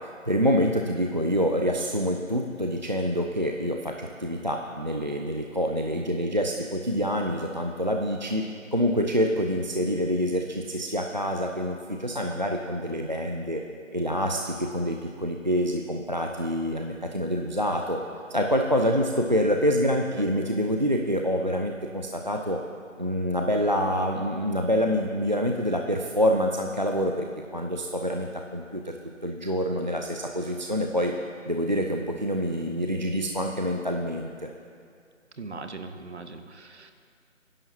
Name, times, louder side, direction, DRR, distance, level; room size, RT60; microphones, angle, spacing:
voice 1, 0.3-8.4 8.7-13.6 13.9-18.0 18.3-22.6 23.0-27.3 27.5-29.0 29.2-31.1 31.5-34.5, equal, 35° right, 2 dB, 0.5 m, -26 dB
voice 2, 35.4-36.9, right 3 dB, 55° right, 7 dB, 1.1 m, -40 dB
29.0 x 10.5 x 2.8 m, 2.3 s
figure-of-eight pair, 165°, 39 cm